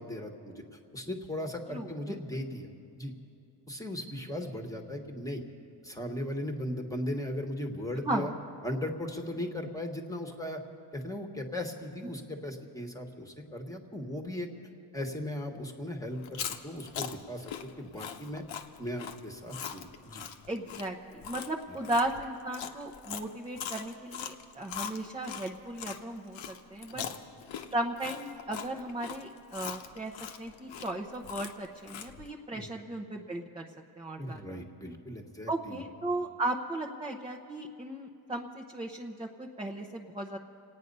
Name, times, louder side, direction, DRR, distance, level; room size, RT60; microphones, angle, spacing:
voice 1, 0.0-2.7 2.9-3.1 3.7-5.4 5.8-8.3 8.6-10.6 10.9-14.5 14.9-18.4 18.8-20.2 26.9-27.2 32.5-32.7 34.2-35.8, left 1 dB, 5° left, 3 dB, 1.4 m, -37 dB
voice 2, 1.7-2.2 8.0-8.4 20.5-27.0 27.7-30.1 30.4-33.6 34.0-34.6 35.5-40.4, right 1 dB, 10° right, 1 dB, 0.8 m, -36 dB
Chewing mastication, 16.2-26.0 26.3-32.3, left 8 dB, 75° left, 1.1 m, -41 dB
26.5 x 9.3 x 5.4 m, 2.7 s
cardioid pair, 115°, 46 cm